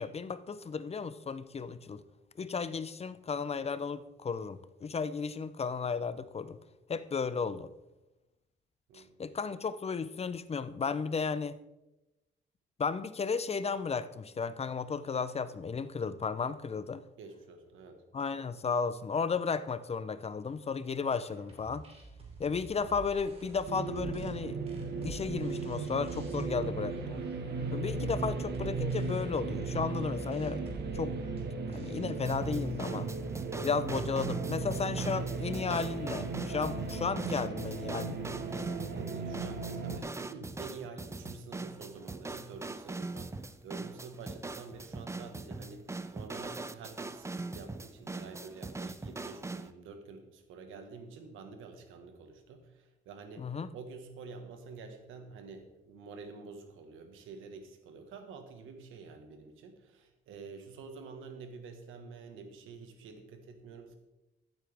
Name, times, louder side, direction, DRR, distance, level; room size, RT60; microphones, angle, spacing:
voice 1, 0.0-2.0 2.4-6.6 6.9-7.7 8.9-11.6 12.8-17.0 18.1-21.9 22.4-24.6 25.0-27.2 27.7-30.6 30.9-31.1 31.7-33.1 33.6-38.2 53.4-53.7, left 5 dB, 30° left, 14 dB, 0.6 m, -34 dB
voice 2, 17.2-18.0 38.5-64.0, right 4 dB, 90° right, 6 dB, 1.5 m, -48 dB
sound 1, 21.0-32.9, right 2 dB, 30° right, 2.8 m, -51 dB
sound 2, 23.7-40.0, right 4 dB, 55° right, 1.4 m, -36 dB
sound 3, 32.2-49.7, right 3 dB, 15° right, 0.5 m, -41 dB
13.5 x 8.1 x 3.5 m, 0.98 s
cardioid pair, 90°, 20 cm